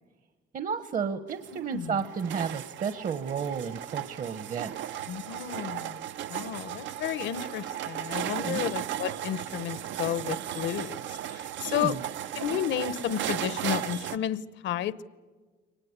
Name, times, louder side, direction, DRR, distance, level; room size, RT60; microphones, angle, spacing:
voice 1, 0.5-5.0 8.4-8.6 11.7-12.0, right 6 dB, 45° right, 11 dB, 1.0 m, -32 dB
sound 1, 1.3-14.2, right 11 dB, 75° right, 0.7 m, -36 dB
voice 2, 1.5-2.0 5.1-6.0 6.3-12.0 12.3-15.0, left 10 dB, 75° left, 17 dB, 1.0 m, -32 dB
24.0 x 19.5 x 9.6 m, 1.4 s
cardioid pair, 115°, 19 cm